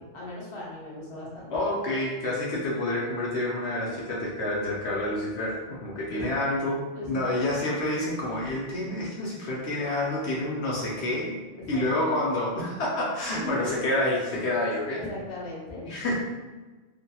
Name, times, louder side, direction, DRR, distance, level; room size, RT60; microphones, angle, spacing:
voice 1, 0.0-1.5 6.1-6.2 6.9-7.4 10.9-11.0 11.6-11.8 13.3-13.9 14.9-15.9, left 2 dB, 30° left, -6 dB, 0.6 m, -37 dB
voice 2, 1.5-11.4 11.7-15.0 15.8-16.1, left 1 dB, 65° left, -5 dB, 0.8 m, -28 dB
2.7 x 2.5 x 2.2 m, 1.3 s
omnidirectional pair, 1.3 m